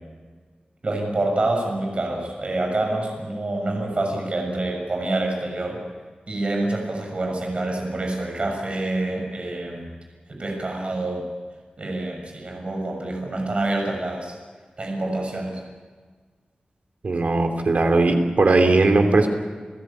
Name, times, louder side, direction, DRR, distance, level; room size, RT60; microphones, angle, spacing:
voice 1, 0.8-5.8 6.3-9.9 10.3-11.3 11.8-14.3 14.8-15.6, right 2 dB, 45° right, 2 dB, 6.5 m, -27 dB
voice 2, 17.0-19.3, right 2 dB, 65° right, 5 dB, 3.0 m, -18 dB
29.5 x 15.5 x 8.7 m, 1.5 s
wide cardioid pair, 110°, 3 cm